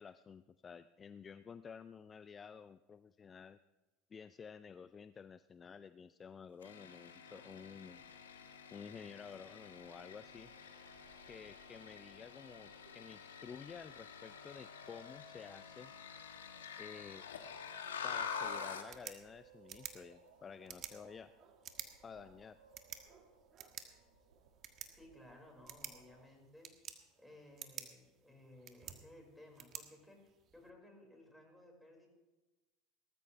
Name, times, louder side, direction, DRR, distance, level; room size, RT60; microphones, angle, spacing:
voice 1, 0.0-3.6 4.1-8.0 8.7-10.5 11.3-15.9 16.8-17.3 18.0-21.3 22.0-22.6, left 6 dB, 30° left, 13 dB, 0.5 m, -52 dB
sound 1, 6.6-18.9, left 6 dB, 90° left, 1.4 m, -47 dB
sound 2, 7.2-26.3, right 5 dB, 85° right, 2.1 m, -66 dB
sound 3, 18.7-30.7, right 9 dB, 45° right, 1.5 m, -53 dB
voice 2, 24.9-26.7 27.2-30.2 30.5-32.1, left 1 dB, ahead, 0 dB, 5.3 m, -58 dB
19.0 x 13.5 x 3.3 m, 1.1 s
hypercardioid pair, 80°, 0 cm